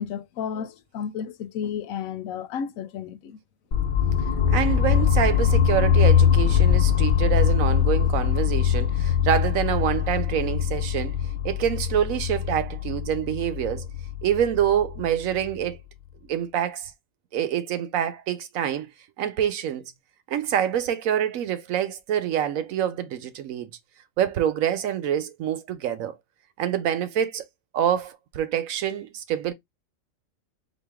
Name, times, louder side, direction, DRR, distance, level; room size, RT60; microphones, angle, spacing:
voice 1, 0.0-3.4, left 7 dB, 80° left, 1.0 m, -32 dB
sound 1, 3.7-15.6, left 8 dB, 55° left, 0.5 m, -22 dB
voice 2, 4.5-11.2 11.4-13.9 14.2-15.8 16.3-16.9 17.3-18.9 19.2-19.8 20.3-23.7 24.2-26.1 26.6-27.4 27.7-29.5, right 10 dB, 80° right, 1.1 m, -26 dB
4.0 x 2.6 x 3.5 m
omnidirectional pair, 1.4 m